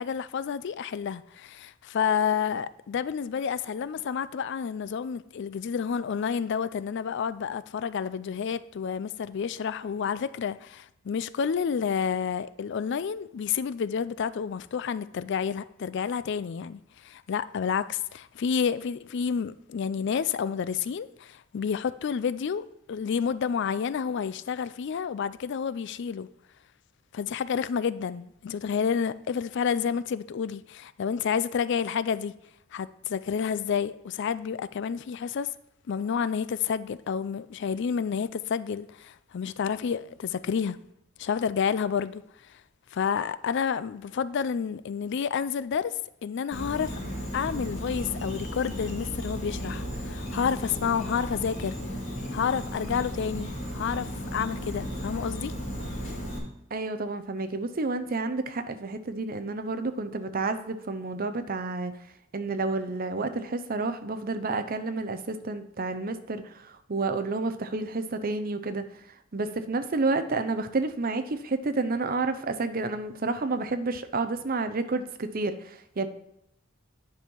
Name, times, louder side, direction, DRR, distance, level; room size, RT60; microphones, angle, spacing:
voice 1, 0.0-26.3 27.1-32.3 32.7-35.5 35.9-40.8 41.2-42.2 42.9-47.0 47.3-51.8 52.3-55.5, left 7 dB, 60° left, 0.4 m, -30 dB
Insect, 46.5-56.4, equal, 35° left, 3.1 m, -35 dB
voice 2, 56.7-61.9 62.3-68.9 69.3-76.1, right 3 dB, 45° right, 0.7 m, -30 dB
9.8 x 5.4 x 4.5 m
head